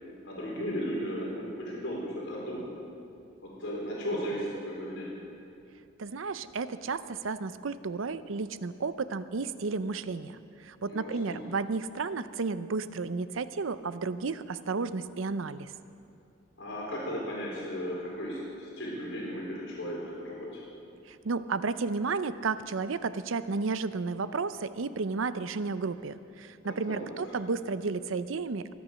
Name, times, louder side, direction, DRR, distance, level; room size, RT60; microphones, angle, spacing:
voice 1, 0.2-2.8 3.4-5.3 10.8-11.4 16.6-20.5 26.6-27.3, equal, 70° left, -4 dB, 4.7 m, -36 dB
voice 2, 6.0-10.4 10.6-15.7 21.1-28.7, right 4 dB, 80° right, 14 dB, 0.6 m, -32 dB
23.5 x 9.5 x 6.3 m, 2.6 s
head